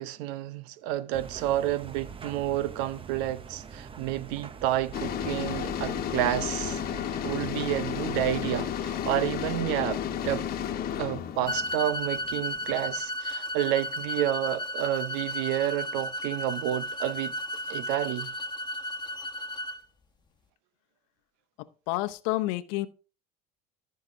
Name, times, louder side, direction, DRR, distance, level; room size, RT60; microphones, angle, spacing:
voice 1, 0.0-6.8 7.2-10.5 11.0-17.3 17.7-18.3, right 12 dB, 75° right, 0.8 m, -30 dB
sound 1, 1.1-8.5, right 6 dB, 25° right, 0.9 m, -44 dB
sound 2, 4.9-12.9, left 9 dB, 50° left, 1.3 m, -33 dB
sound 3, 11.5-19.8, equal, 20° left, 1.4 m, -34 dB
voice 2, 21.9-22.9, left 18 dB, 75° left, 0.8 m, -29 dB
14.0 x 5.7 x 3.8 m
supercardioid pair, 90°, 20 cm